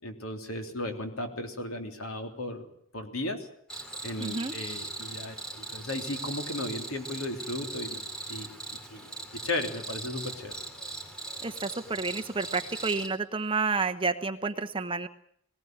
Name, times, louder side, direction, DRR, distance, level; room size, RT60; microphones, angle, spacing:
voice 1, 0.0-2.7 2.9-3.5 4.0-8.0 8.3-8.5 8.9-10.5, left 1 dB, 85° left, 4 dB, 3.4 m, -35 dB
Cricket, 3.7-13.1, right 2 dB, 5° left, 3.1 m, -40 dB
voice 2, 4.2-4.6 11.4-15.1, right 4 dB, 25° right, 7 dB, 1.1 m, -30 dB
20.0 x 18.5 x 9.3 m, 0.66 s
head